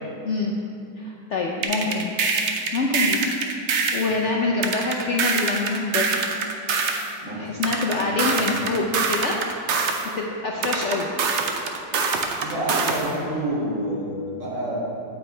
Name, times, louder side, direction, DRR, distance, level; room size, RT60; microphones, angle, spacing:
voice 1, 1.0-2.1 2.4-3.2 3.9-6.2 7.3-9.4 10.0-11.1, left 3 dB, 65° left, -1 dB, 0.7 m, -25 dB
sound 1, 1.6-4.1 4.6-7.1 7.6-10.1 10.6-13.1, right 4 dB, 60° right, 0.7 m, -24 dB
voice 2, 7.2-7.6 8.0-8.8 12.3-14.8, right 1 dB, 75° right, -6 dB, 2.7 m, -29 dB
9.0 x 8.9 x 3.2 m, 2.5 s
omnidirectional pair, 1.9 m